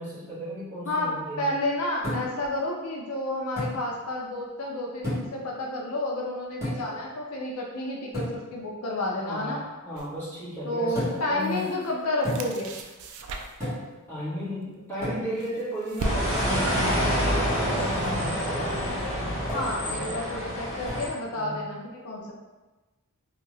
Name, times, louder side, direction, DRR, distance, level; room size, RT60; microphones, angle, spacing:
voice 1, 0.0-1.7 9.1-11.8 14.1-18.9 19.8-20.3 21.3-21.7, equal, 10° left, -12 dB, 1.3 m, -35 dB
voice 2, 0.9-9.6 10.6-12.7 19.5-22.3, left 1 dB, 80° left, -1 dB, 0.5 m, -30 dB
sound 1, 2.0-2.5 3.6-3.8 5.0-5.4 6.6-7.0 8.1-8.4 10.9-11.3 12.2-12.7 13.6-14.0 15.0-15.4 16.4-16.6 18.0-18.3 19.5-19.8 20.8-21.1, left 1 dB, 15° right, 1.3 m, -32 dB
sound 2, 9.9-10.2 11.1-11.9 12.2-13.8 14.9-16.6, right 2 dB, 70° right, 0.3 m, -37 dB
sound 3, 16.0-21.1, equal, 35° left, 1.1 m, -27 dB
2.7 x 2.4 x 3.1 m, 1.2 s
head